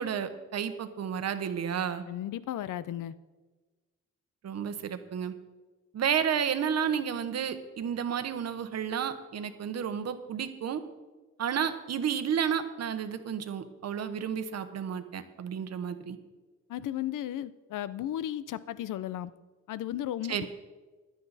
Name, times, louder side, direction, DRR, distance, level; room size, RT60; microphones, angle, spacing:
voice 1, 0.0-2.0 4.4-5.3 5.9-10.8 11.4-16.2 20.3-20.5, right 8 dB, 55° right, 10 dB, 1.0 m, -31 dB
voice 2, 2.1-3.1 16.7-19.3 19.7-20.5, left 12 dB, 85° left, 16 dB, 0.6 m, -35 dB
15.5 x 11.0 x 4.1 m, 1.2 s
wide cardioid pair, 160°, 31 cm